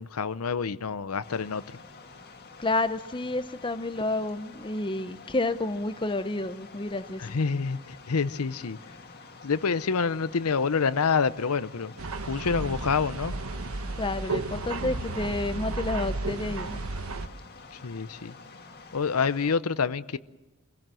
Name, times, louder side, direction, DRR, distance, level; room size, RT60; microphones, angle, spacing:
voice 1, 0.0-1.6 7.2-8.8 9.4-11.9 12.3-13.3 17.7-18.3 18.9-20.2, left 5 dB, 90° left, 0.7 m, -27 dB
sound 1, 1.2-19.6, left 4 dB, 45° left, 2.1 m, -49 dB
voice 2, 2.6-7.3 14.0-16.8, left 2 dB, 20° left, 0.8 m, -30 dB
sound 2, 12.0-17.3, right 3 dB, 75° right, 1.1 m, -33 dB
25.5 x 17.0 x 7.6 m
head